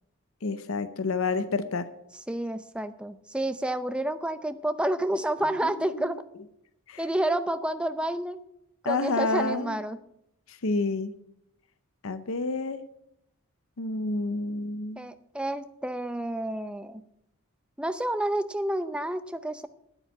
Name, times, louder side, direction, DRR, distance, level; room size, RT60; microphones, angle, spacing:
voice 1, 0.4-1.9 5.6-5.7 6.0-6.1 6.9-7.0 8.8-9.7 10.5-11.1 12.0-12.8 13.8-15.0, left 3 dB, 70° left, 12 dB, 0.7 m, -29 dB
voice 2, 2.3-6.2 7.0-8.4 8.8-10.0 15.0-17.0 17.8-19.7, right 1 dB, 5° right, 11 dB, 0.5 m, -29 dB
9.8 x 8.7 x 8.2 m, 0.79 s
head